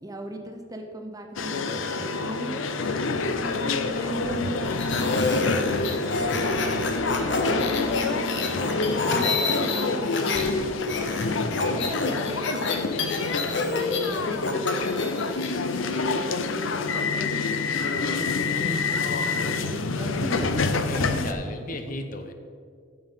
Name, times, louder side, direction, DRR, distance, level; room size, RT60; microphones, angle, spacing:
voice 1, 0.0-2.8 3.4-10.8 11.5-12.7 13.6-15.5 15.8-17.4 17.8-20.5 20.9-21.4, right 1 dB, 20° right, 4 dB, 0.7 m, -38 dB
sound 1, 1.4-21.3, left 4 dB, 80° left, 0.6 m, -27 dB
voice 2, 1.7-2.1 3.4-4.3 4.7-4.9 8.7-9.3 11.0-11.7 20.9-22.3, left 1 dB, 45° left, 6 dB, 0.7 m, -38 dB
sound 2, 3.9-8.1, right 4 dB, 90° right, 0.5 m, -40 dB
sound 3, 4.6-10.5 10.8-15.5, left 3 dB, 65° left, 1.1 m, -29 dB
9.1 x 7.2 x 5.6 m, 2.1 s
head